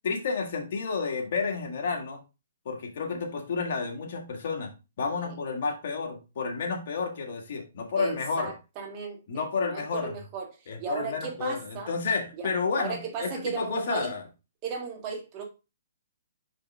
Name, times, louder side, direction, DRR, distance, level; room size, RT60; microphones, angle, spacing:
voice 1, 0.0-2.2 2.7-4.7 5.0-8.5 9.3-10.1 10.7-14.2, left 4 dB, 55° left, 1.8 m, -31 dB
voice 2, 8.0-9.2 9.6-11.9 12.4-12.5 12.8-14.1 14.6-15.4, right 5 dB, 30° right, 1.7 m, -36 dB
5.4 x 5.2 x 3.4 m
hypercardioid pair, 150°, 0 cm